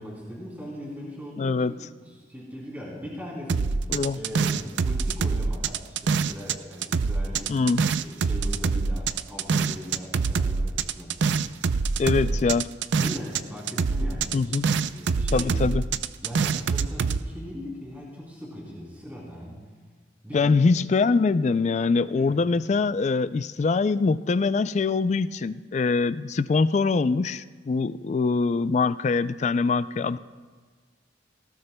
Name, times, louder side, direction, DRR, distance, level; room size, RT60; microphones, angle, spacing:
voice 1, 0.0-7.6 8.0-12.4 13.0-14.6 14.9-15.6 16.2-19.6 20.2-20.7 22.1-22.4, equal, 10° right, -5 dB, 3.1 m, -40 dB
voice 2, 1.4-1.7 3.9-4.2 7.5-7.8 12.0-12.6 14.3-14.7 15.3-15.8 20.3-30.2, left 4 dB, 40° left, 14 dB, 0.3 m, -23 dB
sound 1, 3.5-6.6 6.8-13.4 13.7-17.2, right 5 dB, 75° right, 0.4 m, -25 dB
18.5 x 18.0 x 2.2 m, 1.5 s
head